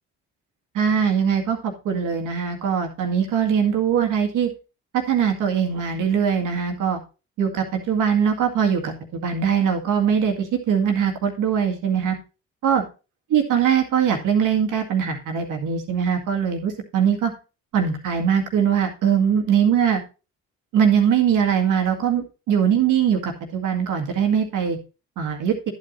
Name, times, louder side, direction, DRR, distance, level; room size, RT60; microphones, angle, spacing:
voice 1, 0.7-4.5 4.9-7.0 7.4-12.2 12.6-12.8 13.3-17.3 17.7-20.0 20.7-24.8 25.2-25.5, right 7 dB, 75° right, 3 dB, 2.0 m, -21 dB
11.0 x 8.4 x 2.6 m, 0.30 s
supercardioid pair, 65°, 32 cm